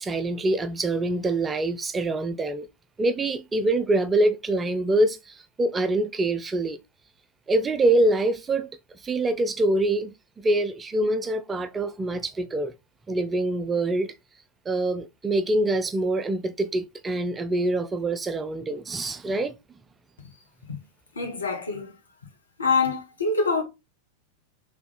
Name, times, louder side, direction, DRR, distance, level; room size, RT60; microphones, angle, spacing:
voice 1, 0.0-2.7 3.0-6.8 7.5-8.7 9.0-12.7 13.1-14.1 14.7-19.6, right 2 dB, 15° right, 0.4 m, -25 dB
voice 2, 21.1-22.0 22.6-23.6, left 4 dB, 75° left, 1.3 m, -25 dB
3.3 x 3.3 x 3.9 m
figure-of-eight pair, 90°, 0 cm